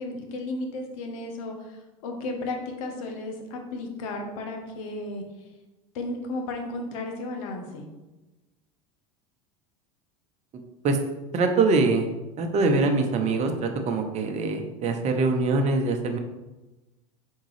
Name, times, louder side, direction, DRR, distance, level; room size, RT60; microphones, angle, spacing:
voice 1, 0.0-5.2 5.9-7.9, left 2 dB, 70° left, 3 dB, 1.0 m, -34 dB
voice 2, 11.3-12.1 12.4-16.2, right 3 dB, 40° right, 5 dB, 0.7 m, -23 dB
4.5 x 3.6 x 3.3 m, 1.1 s
hypercardioid pair, 90°, 18 cm